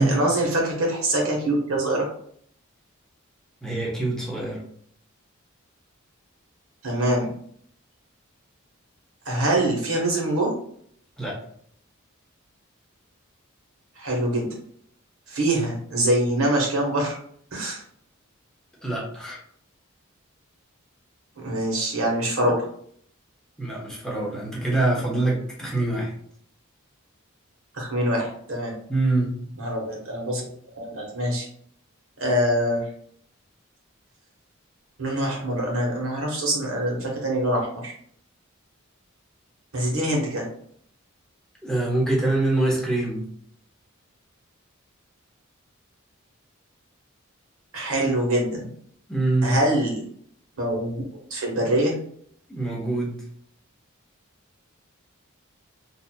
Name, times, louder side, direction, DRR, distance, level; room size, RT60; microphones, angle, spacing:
voice 1, 0.0-2.1 6.8-7.3 9.2-10.5 14.0-14.5 15.3-17.2 17.5-17.8 21.4-22.6 27.7-28.7 29.6-30.5 30.7-31.5 32.2-32.8 35.0-37.9 39.7-40.4 47.7-48.7 49.4-50.0 50.6-51.0 51.3-52.0, right 1 dB, 85° right, -1 dB, 1.3 m, -24 dB
voice 2, 3.6-4.6 11.2-11.4 18.8-19.4 22.4-22.5 23.6-26.1 28.9-29.4 41.6-43.2 49.1-49.5 52.5-53.2, right 2 dB, 5° left, -4 dB, 1.0 m, -24 dB
4.5 x 2.8 x 2.2 m, 0.63 s
head